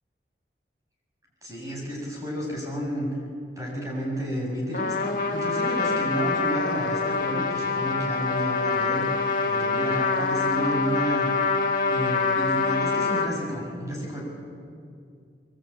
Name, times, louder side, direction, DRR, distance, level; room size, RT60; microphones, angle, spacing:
voice 1, 1.4-3.1 3.6-5.0 5.3-9.1 9.5-11.3 11.9-14.2, equal, 20° right, -2 dB, 7.4 m, -31 dB
Trumpet, 4.7-13.3, left 4 dB, 50° left, 2.5 m, -25 dB
24.5 x 23.5 x 9.0 m, 2.3 s
head